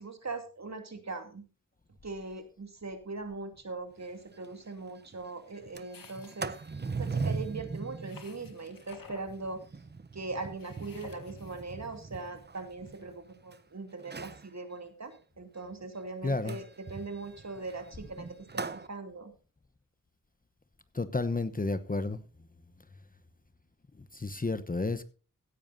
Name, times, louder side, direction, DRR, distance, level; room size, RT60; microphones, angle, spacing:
voice 1, 0.0-1.4 2.0-6.5 7.0-9.6 10.1-18.3 18.5-19.3, right 3 dB, 50° right, 2.6 m, -40 dB
Sliding door, 4.0-4.1 4.4-4.5 4.9-5.2 5.6-13.6 14.0-14.5 16.5-18.9, right 4 dB, 30° right, 0.7 m, -40 dB
sound 1, 5.9-6.9 8.0-9.3 10.6-11.6, left 5 dB, 85° left, 1.9 m, -53 dB
voice 2, 16.2-16.6 20.9-22.2 24.1-25.0, left 3 dB, 25° left, 0.9 m, -31 dB
16.5 x 10.5 x 2.7 m
wide cardioid pair, 60°, 33 cm